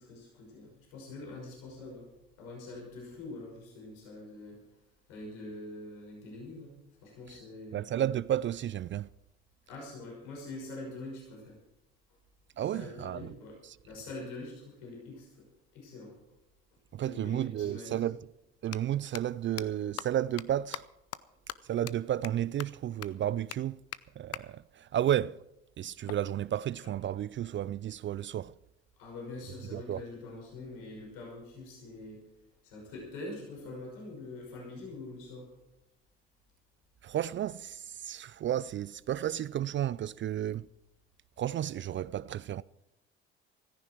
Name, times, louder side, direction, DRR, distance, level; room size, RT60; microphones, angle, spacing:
voice 1, 0.0-2.1 2.4-4.6 5.1-6.7 7.0-7.8 9.7-11.6 12.6-13.6 13.9-16.1 17.0-18.1 29.0-32.2 32.6-35.5, left 2 dB, 75° left, 5.9 m, -44 dB
voice 2, 7.7-9.1 12.6-13.3 13.6-13.8 16.9-18.2 18.6-20.8 21.6-23.8 24.2-25.4 25.8-28.5 29.7-30.0 37.0-40.7 41.4-42.6, right 11 dB, 40° right, 0.4 m, -32 dB
sound 1, 17.5-17.6 18.6-18.8 19.1-19.2 19.6-19.7 20.0-20.1 20.4-20.5 20.7-20.8 21.1-21.2 21.5-21.6 21.9-22.0 22.2-22.3 22.6-22.7 23.0-23.1 23.5-23.6 23.9-24.0 24.3-24.4 26.1-27.1, left 13 dB, 50° left, 0.8 m, -41 dB
16.0 x 14.5 x 4.6 m
hypercardioid pair, 60°, 32 cm